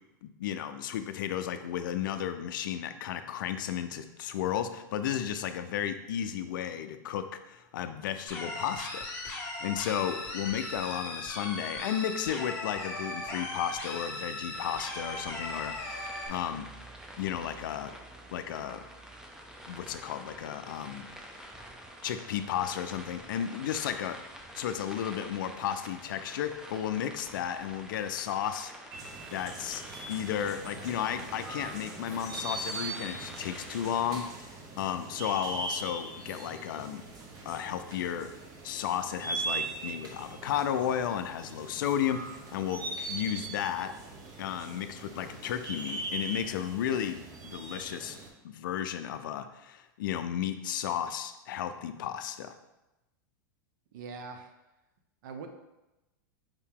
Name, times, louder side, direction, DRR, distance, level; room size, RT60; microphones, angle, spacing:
voice 1, 0.2-16.7 17.2-17.9 18.3-18.8 19.7-21.1 22.0-24.2 24.6-28.7 29.3-29.8 30.1-37.0 37.4-38.3 38.6-42.8 43.1-43.9 44.4-48.2 48.4-52.5, left 9 dB, 75° left, 10 dB, 0.4 m, -33 dB
sound 1, 8.3-16.3, left 2 dB, 20° left, 1.2 m, -38 dB
sound 2, 14.5-34.2, right 1 dB, 5° right, 0.5 m, -48 dB
sound 3, 28.9-48.3, right 3 dB, 35° right, 0.8 m, -40 dB
voice 2, 53.9-54.5 55.2-55.5, right 5 dB, 65° right, 6 dB, 0.7 m, -42 dB
5.0 x 2.7 x 3.6 m, 0.98 s
hypercardioid pair, 120°, 11 cm